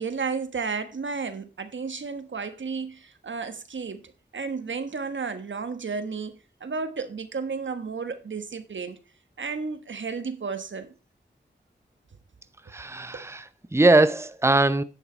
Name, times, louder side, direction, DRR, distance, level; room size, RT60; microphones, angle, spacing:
voice 1, 0.0-9.0 9.4-10.9 13.1-13.2, right 5 dB, 80° right, 1.2 m, -33 dB
voice 2, 12.7-14.8, right 2 dB, 15° right, 0.7 m, -21 dB
10.5 x 6.6 x 4.4 m
wide cardioid pair, 55°, 19 cm